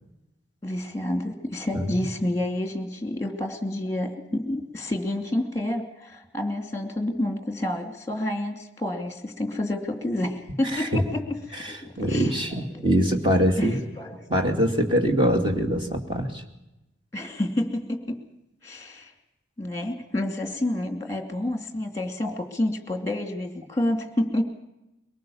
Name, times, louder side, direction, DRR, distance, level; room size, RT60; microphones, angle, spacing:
voice 1, 0.6-11.2 11.5-12.4 12.7-13.0 13.6-14.3 17.1-18.2 18.6-19.1 19.6-24.4, left 1 dB, 15° left, 5 dB, 2.6 m, -29 dB
voice 2, 10.6-11.0 11.5-13.8 14.3-16.4 22.2-22.3, equal, 25° right, 3 dB, 2.6 m, -24 dB
23.5 x 19.0 x 7.2 m, 0.93 s
head